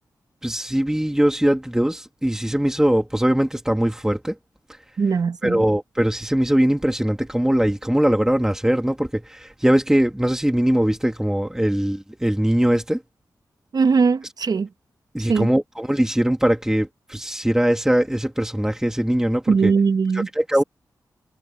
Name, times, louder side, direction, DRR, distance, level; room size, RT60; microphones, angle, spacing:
voice 1, 0.4-4.4 4.7-4.8 5.4-13.0 15.1-19.7 20.1-20.6, right 1 dB, 5° right, 1.8 m, -21 dB
voice 2, 5.0-5.6 13.7-14.7 15.3-15.5 19.5-20.3, right 5 dB, 60° right, 1.0 m, -20 dB
cardioid pair, 60°, 7 cm